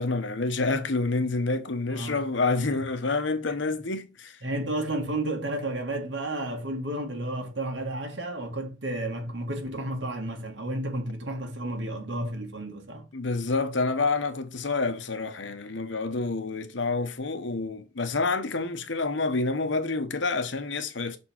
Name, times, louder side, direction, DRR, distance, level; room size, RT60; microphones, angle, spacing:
voice 1, 0.0-4.4 13.1-21.2, left 3 dB, 75° left, 1.1 m, -28 dB
voice 2, 1.9-2.8 4.4-13.1, right 1 dB, 75° right, 1.9 m, -32 dB
6.7 x 4.5 x 4.4 m
head